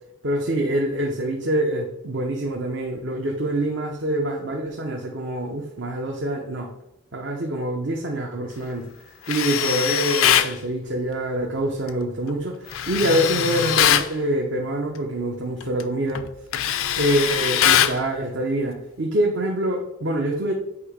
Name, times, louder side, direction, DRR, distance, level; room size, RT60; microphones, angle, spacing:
voice 1, 0.2-6.7 7.1-8.9 9.3-16.3 17.0-20.5, right 1 dB, 60° right, 1 dB, 0.7 m, -25 dB
Tools, 9.3-10.5 12.7-14.1 15.6-15.8 16.2-18.0, left 10 dB, 85° left, 0.4 m, -21 dB
8.3 x 2.9 x 4.9 m, 0.87 s
head